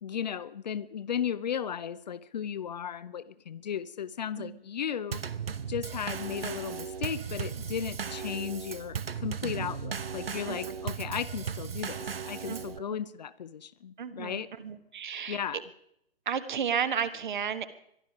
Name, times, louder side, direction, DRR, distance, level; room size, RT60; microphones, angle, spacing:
voice 1, 0.0-5.3 5.7-14.5 15.3-15.6, left 8 dB, 45° left, 15 dB, 0.6 m, -35 dB
Drum kit / Snare drum / Bass drum, 5.1-12.8, right 6 dB, 70° right, 0.9 m, -36 dB
voice 2, 12.5-13.0 14.0-15.4 16.2-17.7, right 7 dB, 50° right, 12 dB, 1.4 m, -33 dB
22.0 x 13.0 x 4.9 m, 0.75 s
figure-of-eight pair, 125°, 31 cm